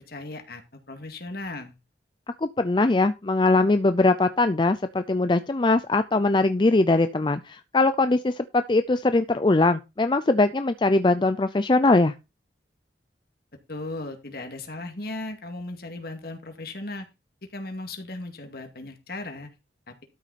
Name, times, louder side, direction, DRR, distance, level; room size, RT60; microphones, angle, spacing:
voice 1, 0.1-1.8 13.7-17.1 17.5-19.5 19.9-20.0, left 2 dB, 55° left, 2.2 m, -36 dB
voice 2, 2.4-12.1, left 2 dB, 25° left, 0.4 m, -21 dB
12.5 x 6.1 x 4.2 m
head